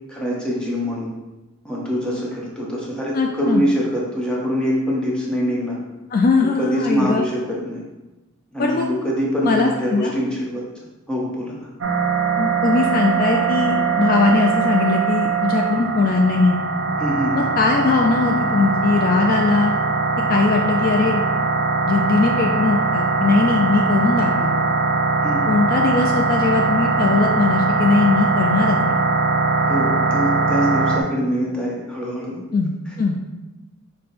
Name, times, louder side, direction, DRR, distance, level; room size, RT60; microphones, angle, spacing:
voice 1, 0.1-1.1 1.6-5.8 6.6-7.8 8.5-10.6 11.1-11.7 17.0-17.5 25.2-25.5 29.6-32.4 32.9-33.0, equal, 5° left, -4 dB, 0.8 m, -24 dB
voice 2, 3.1-3.6 6.1-7.3 8.6-8.9 9.4-10.1 12.4-16.6 17.3-19.7 20.3-21.2 21.9-24.7 25.5-29.0 32.5-32.7 33.0-33.2, left 4 dB, 45° left, 2 dB, 0.3 m, -20 dB
sound 1, 11.8-31.0, right 4 dB, 65° right, 0.5 m, -21 dB
5.1 x 2.1 x 4.2 m, 1.0 s
head